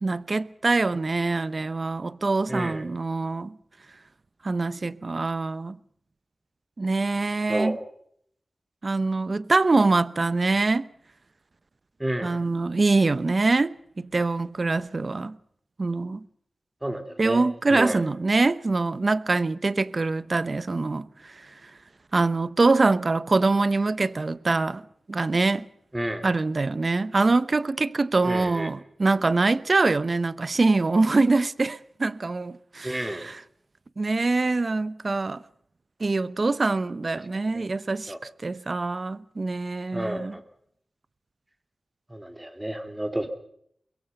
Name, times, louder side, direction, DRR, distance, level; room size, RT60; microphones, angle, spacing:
voice 1, 0.0-3.6 4.4-5.8 6.8-7.8 8.8-10.9 12.2-15.4 15.8-16.3 17.2-21.7 22.1-24.8 25.1-25.7 26.2-33.3 34.0-35.4 36.0-38.1 38.4-40.3, right 3 dB, 45° right, 0.9 m, -24 dB
voice 2, 2.5-2.8 7.5-7.8 12.0-12.4 16.8-17.4 17.7-18.0 25.9-26.2 28.2-28.7 32.8-33.3 37.5-37.6 38.1-38.2 39.9-40.4 42.1-43.3, right 1 dB, 15° right, 3.4 m, -30 dB
24.0 x 22.5 x 5.3 m
wide cardioid pair, 70°, 0 cm